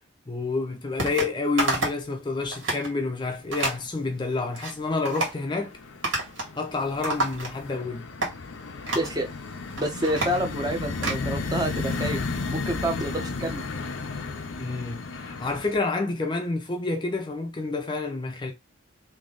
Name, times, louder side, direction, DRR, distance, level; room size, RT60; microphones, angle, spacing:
voice 1, 0.3-5.7 6.6-8.1 14.6-18.5, left 3 dB, 25° left, 0.5 m, -29 dB
sound 1, 1.0-1.3 1.6-2.1 2.4-2.9 3.5-3.8 4.3-4.7 5.1-5.4 6.0-6.6 6.8-7.8 8.2-8.3 8.9-9.2 9.6-11.2, right 2 dB, 85° right, 2.0 m, -29 dB
sound 2, 2.9-3.3 3.5-4.3 4.7-15.8, left 3 dB, 85° left, 0.7 m, -34 dB
voice 2, 8.9-9.3 9.8-12.2 12.5-13.6, right 1 dB, 20° right, 0.8 m, -28 dB
3.4 x 2.7 x 3.8 m
head